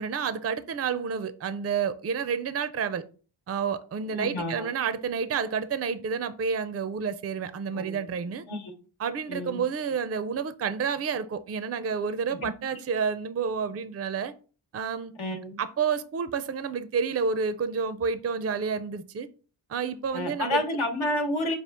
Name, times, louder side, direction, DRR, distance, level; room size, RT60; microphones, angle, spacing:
voice 1, 0.0-3.0 3.5-8.4 9.0-14.3 14.7-15.1 15.6-19.3 19.7-20.6, right 6 dB, 35° right, 0.4 m, -29 dB
voice 2, 4.1-4.7 7.7-8.0 8.5-8.8 9.3-9.6 12.3-12.5 15.2-15.6 20.1-21.6, left 1 dB, 75° left, 1.1 m, -30 dB
5.1 x 2.4 x 3.4 m
cardioid pair, 45°, 48 cm